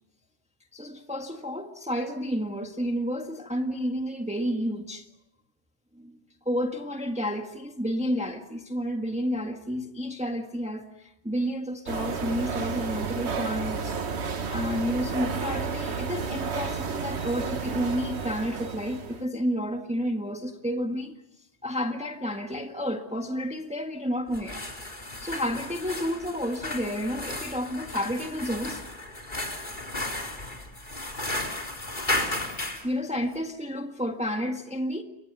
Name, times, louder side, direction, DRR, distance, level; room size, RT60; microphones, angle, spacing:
voice 1, 0.7-5.1 6.0-6.2 6.4-13.9 14.4-21.2 21.6-24.6 25.2-28.8 32.8-35.0, equal, 5° right, 1.6 m, -30 dB
sound 1, 11.9-19.2, right 5 dB, 85° right, 1.6 m, -32 dB
sound 2, 24.3-32.8, left 1 dB, 45° left, 4.0 m, -34 dB
29.5 x 23.0 x 6.8 m
omnidirectional pair, 1.1 m